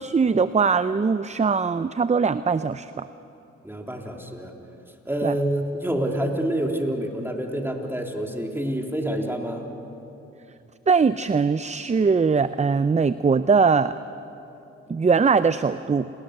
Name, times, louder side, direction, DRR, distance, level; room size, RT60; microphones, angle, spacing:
voice 1, 0.0-3.1 5.2-5.4 10.9-14.0 14.9-16.1, right 5 dB, 25° right, 13 dB, 0.5 m, -21 dB
voice 2, 3.6-4.5 5.0-9.7, right 1 dB, 5° right, 1 dB, 3.7 m, -27 dB
28.5 x 20.0 x 6.7 m, 2.9 s
cardioid pair, 60°, 30 cm